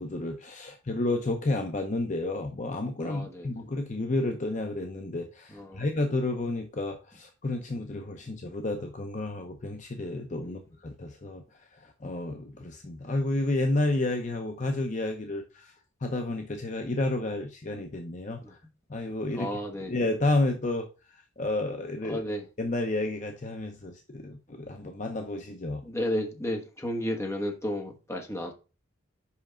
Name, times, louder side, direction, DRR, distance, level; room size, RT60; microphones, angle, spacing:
voice 1, 0.0-11.4 11.7-15.7 16.0-18.6 18.9-19.6 19.9-20.9 21.4-22.2 22.6-25.8, left 2 dB, 35° left, 0.7 m, -31 dB
voice 2, 3.0-3.5 5.5-5.8 10.4-10.5 18.4-18.5 19.4-19.9 22.0-22.4 25.8-28.5, equal, 15° left, 1.3 m, -33 dB
5.7 x 5.3 x 5.0 m
head